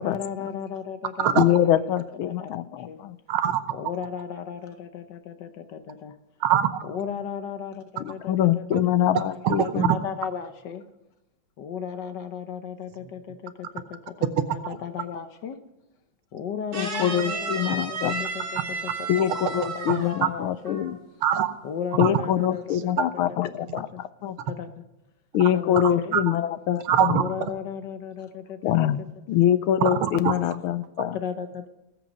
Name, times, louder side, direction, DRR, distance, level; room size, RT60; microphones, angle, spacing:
voice 1, 0.0-3.0 3.7-6.2 6.8-8.9 9.6-10.8 11.6-15.6 16.3-18.9 19.6-20.8 21.6-23.1 23.4-24.0 24.5-24.7 25.5-26.2 27.1-29.1 31.1-31.5, left 7 dB, 60° left, 9 dB, 1.3 m, -35 dB
voice 2, 1.4-3.1 8.3-9.9 16.7-18.2 19.1-21.0 22.0-24.4 25.3-27.2 28.6-29.0 29.3-31.1, left 11 dB, 80° left, 14 dB, 1.5 m, -24 dB
voice 3, 3.3-3.6 6.4-6.9 8.7-8.8 9.1-10.0 14.6-14.8 19.6-20.3 21.2-21.5 22.0-22.2 22.7-23.0 25.7-25.8 26.1-26.2 26.8-27.3 29.8-30.3, right 9 dB, 75° right, 10 dB, 1.8 m, -24 dB
sound 1, 16.7-20.4 20.6-21.0, right 3 dB, 45° right, 2.5 m, -33 dB
18.5 x 8.0 x 5.3 m, 0.99 s
omnidirectional pair, 2.4 m